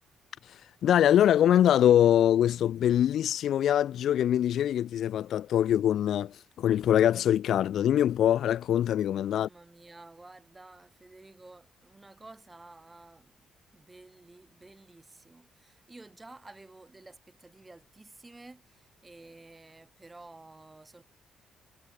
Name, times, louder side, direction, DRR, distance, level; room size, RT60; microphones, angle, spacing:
voice 1, 0.8-9.5, left 10 dB, 70° left, 0.4 m, -23 dB
voice 2, 9.3-21.0, right 2 dB, 20° right, 3.8 m, -52 dB
cardioid pair, 90°, 0 cm